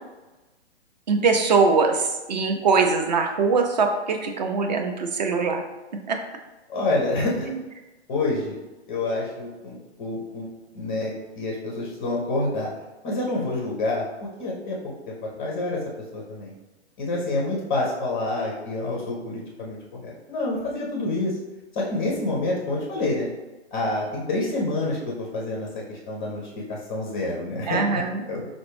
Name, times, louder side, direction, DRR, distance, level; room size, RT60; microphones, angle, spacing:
voice 1, 1.1-5.6 6.1-6.2 27.7-28.2, right 4 dB, 40° right, 4 dB, 0.5 m, -22 dB
voice 2, 6.7-7.5 8.1-8.6 8.9-10.5 10.7-12.7 13.0-14.1 14.4-14.8 15.1-15.8 16.1-16.5 17.0-21.3 21.7-23.3 23.7-25.0 25.3-26.4 26.7-28.5, left 2 dB, 15° left, -3 dB, 0.4 m, -27 dB
4.8 x 2.0 x 3.2 m, 1.1 s
figure-of-eight pair, 125°, 34 cm